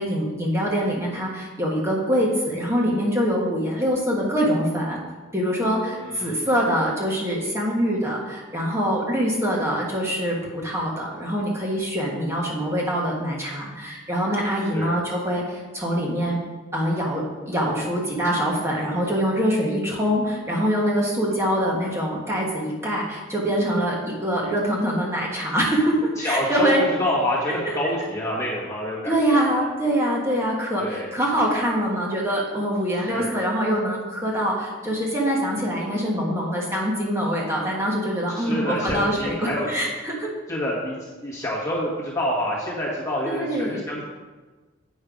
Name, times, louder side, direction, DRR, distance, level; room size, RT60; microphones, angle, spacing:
voice 1, 0.0-5.0 5.3-16.4 16.7-26.8 27.6-27.7 29.0-40.3 43.2-43.8, equal, 15° right, -3 dB, 1.4 m, -24 dB
voice 2, 5.9-6.4 14.7-14.9 26.2-29.7 30.8-31.1 33.1-33.4 38.4-39.7 40.5-44.0, left 1 dB, 15° left, -6 dB, 1.5 m, -27 dB
8.4 x 5.4 x 5.2 m, 1.3 s
head